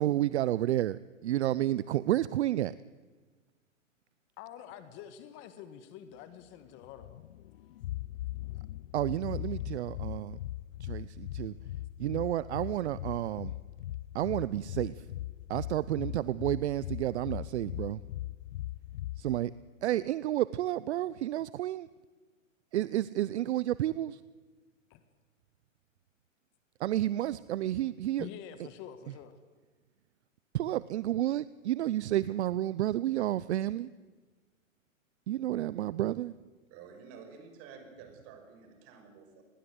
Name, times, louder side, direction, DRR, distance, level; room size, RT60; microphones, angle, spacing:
voice 1, 0.0-2.7 8.9-10.4 10.8-11.5 12.0-13.5 14.1-15.0 15.5-18.0 19.2-19.5 19.8-21.9 22.7-24.2 26.8-28.3 30.5-33.9 35.3-36.3, right 13 dB, 55° right, 18 dB, 0.7 m, -31 dB
voice 2, 4.4-7.2 24.9-25.0 28.2-29.4, left 10 dB, 30° left, 11 dB, 1.5 m, -47 dB
sound 1, 6.8-19.4, left 15 dB, 45° left, 0.7 m, -40 dB
voice 3, 36.7-39.4, right 6 dB, 35° right, 6 dB, 5.9 m, -51 dB
26.5 x 20.5 x 8.0 m, 1.4 s
hypercardioid pair, 135°, 40 cm